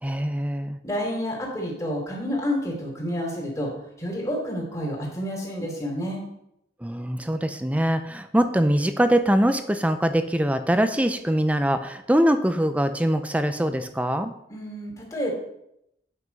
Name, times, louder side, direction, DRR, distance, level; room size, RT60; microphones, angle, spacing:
voice 1, 0.0-0.8 6.8-14.3, equal, 10° right, 9 dB, 0.6 m, -23 dB
voice 2, 0.8-3.7 4.0-6.2 14.5-15.3, equal, 20° left, -2 dB, 3.0 m, -29 dB
9.3 x 5.9 x 5.3 m, 0.79 s
head